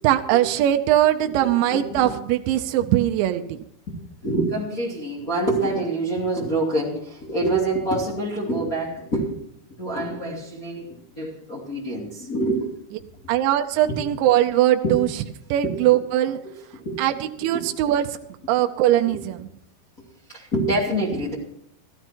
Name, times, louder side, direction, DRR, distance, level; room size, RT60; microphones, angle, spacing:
voice 1, 0.0-3.6 13.3-15.1 15.5-16.4 17.0-18.2 18.5-19.5, right 13 dB, 85° right, 6 dB, 3.0 m, -21 dB
voice 2, 1.3-2.1 4.2-9.3 9.8-10.9 11.1-12.7 13.9-14.0 14.8-15.0 15.6-15.7 16.7-17.1 17.5-17.6 19.1-19.2 20.3-21.3, right 1 dB, 25° left, -6 dB, 2.5 m, -26 dB
15.0 x 14.0 x 4.5 m, 0.72 s
omnidirectional pair, 5.2 m